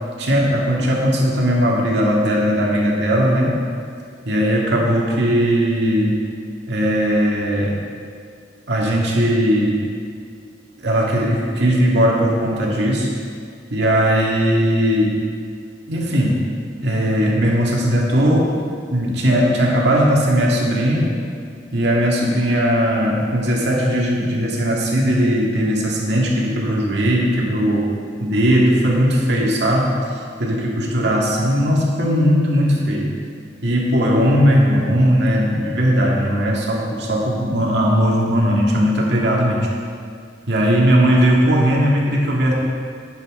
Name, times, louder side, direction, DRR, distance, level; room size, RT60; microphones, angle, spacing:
voice 1, 0.2-3.6 4.3-6.2 6.7-7.8 8.7-9.8 10.8-13.1 13.7-15.1 15.9-16.5 16.8-18.6 18.9-21.1 21.7-27.9 28.2-30.0 30.4-33.1 33.6-39.7 40.5-42.5, equal, 65° right, -3 dB, 2.0 m, -18 dB
11.0 x 9.7 x 3.7 m, 2.3 s
head